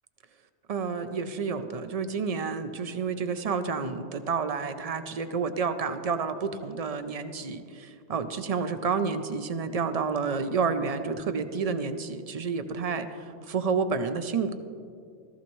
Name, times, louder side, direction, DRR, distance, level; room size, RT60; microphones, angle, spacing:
voice 1, 0.7-14.5, right 5 dB, 45° right, 9 dB, 0.5 m, -30 dB
15.0 x 14.5 x 3.1 m, 2.3 s
omnidirectional pair, 1.2 m